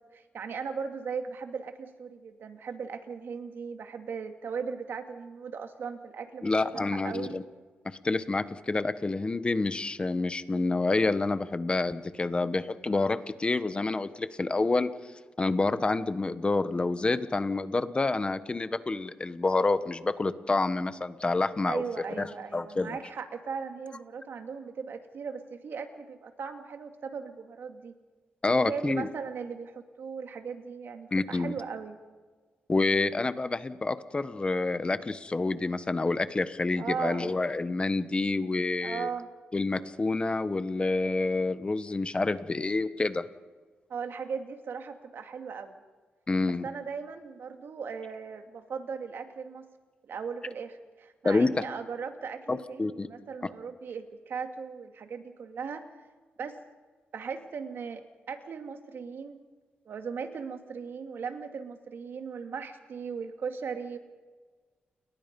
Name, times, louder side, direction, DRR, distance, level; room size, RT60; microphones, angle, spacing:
voice 1, 0.1-7.4 21.7-27.9 28.5-32.0 36.7-37.3 38.8-39.3 43.9-45.8 46.6-49.7 50.1-55.8 56.4-56.6 57.1-59.4 59.9-64.0, right 6 dB, 70° right, 6 dB, 2.3 m, -38 dB
voice 2, 6.4-7.4 7.8-14.9 15.4-21.8 22.2-22.9 28.4-29.1 31.1-31.5 32.7-39.1 39.5-43.2 46.3-46.7 51.2-51.5 52.5-53.1, left 3 dB, 25° left, 12 dB, 1.2 m, -28 dB
29.5 x 22.0 x 5.4 m, 1.4 s
cardioid pair, 95°, 4 cm